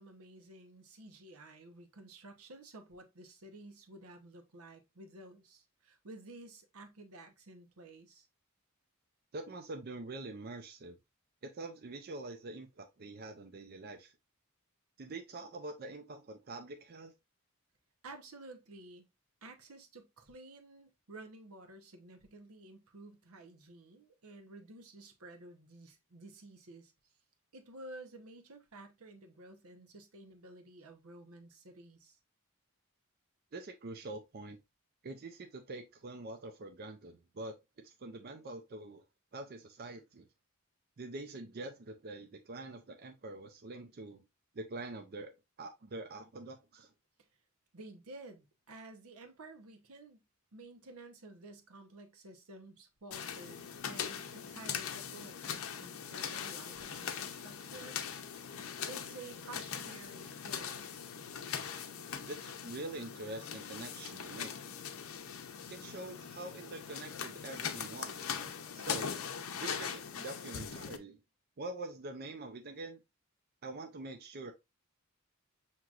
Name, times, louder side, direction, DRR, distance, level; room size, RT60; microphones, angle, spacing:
voice 1, 0.0-8.3 18.0-19.0 19.4-26.9 27.5-32.2 47.7-50.2 50.5-58.0 58.5-60.8, right 2 dB, 85° right, 0.9 m, -52 dB
voice 2, 9.3-11.0 11.4-14.1 15.0-17.1 33.5-34.6 35.0-37.5 37.8-39.0 39.3-40.3 41.0-44.2 44.5-45.3 45.6-46.9 62.3-64.5 65.7-68.3 68.7-69.1 69.6-71.2 71.6-73.0 73.6-74.5, right 2 dB, 45° right, 0.4 m, -45 dB
sound 1, 53.1-71.0, left 7 dB, 70° left, 0.6 m, -41 dB
6.0 x 2.9 x 2.4 m
head